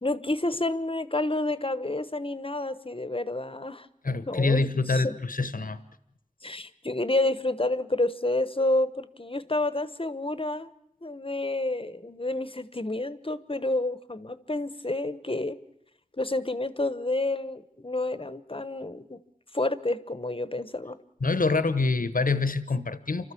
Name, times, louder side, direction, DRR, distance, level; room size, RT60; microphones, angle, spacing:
voice 1, 0.0-3.9 4.3-5.2 6.4-10.7 11.0-15.6 16.2-19.2 19.5-21.0, left 2 dB, 35° left, 14 dB, 1.1 m, -29 dB
voice 2, 4.0-5.8 21.2-23.3, left 3 dB, 65° left, 13 dB, 1.1 m, -26 dB
29.0 x 13.0 x 8.5 m, 0.81 s
wide cardioid pair, 40°, 15 cm